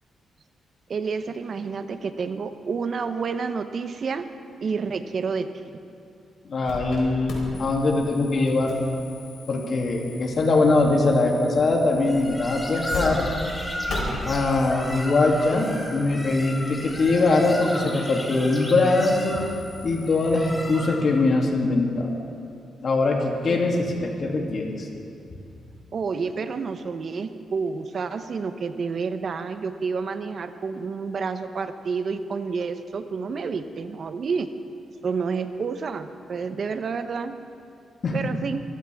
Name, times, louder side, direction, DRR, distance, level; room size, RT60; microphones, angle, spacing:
voice 1, 0.9-4.2 4.6-5.5 23.5-23.6 25.9-34.5 35.0-37.3 38.1-38.6, right 5 dB, 55° right, 9 dB, 0.8 m, -29 dB
voice 2, 6.4-8.8 9.5-13.3 14.2-19.4 19.8-22.2 22.8-24.9 38.0-38.1, left 3 dB, 55° left, 0 dB, 2.7 m, -22 dB
sound 1, 6.6-7.0 7.3-13.0 13.3-13.4 13.9-20.5, left 3 dB, 75° left, 4.1 m, -40 dB
sound 2, 12.0-21.2, equal, 10° left, 2.8 m, -35 dB
24.0 x 15.5 x 3.5 m, 2.6 s
cardioid pair, 90°, 0 cm